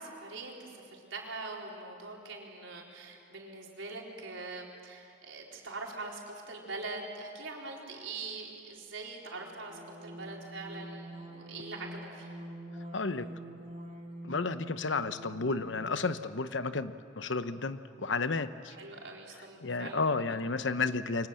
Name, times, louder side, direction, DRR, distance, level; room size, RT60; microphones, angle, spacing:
voice 1, 0.0-12.4 18.7-20.4, right 3 dB, 85° right, -1 dB, 4.4 m, -43 dB
sound 1, 9.3-16.1, right 1 dB, 35° right, 3.3 m, -45 dB
voice 2, 12.9-13.3 14.2-18.7 19.6-21.3, left 3 dB, 70° left, 11 dB, 0.9 m, -32 dB
28.0 x 24.0 x 7.8 m, 2.5 s
head